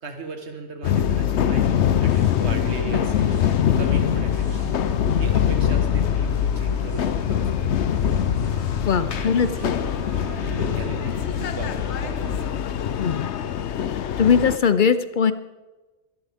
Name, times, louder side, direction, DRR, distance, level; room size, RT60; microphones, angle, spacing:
voice 1, 0.0-4.6 5.2-7.4 9.1-9.3 9.6-9.7 10.2-12.5, right 3 dB, 75° right, 4 dB, 1.8 m, -36 dB
sound 1, 0.8-14.6, left 9 dB, 80° left, 1.0 m, -23 dB
sound 2, 1.3-12.5, right 1 dB, 20° right, 5.7 m, -36 dB
voice 2, 8.9-9.5 13.0-13.3 14.2-15.3, left 6 dB, 55° left, 12 dB, 0.7 m, -19 dB
24.0 x 11.5 x 3.5 m, 1.2 s
omnidirectional pair, 1.1 m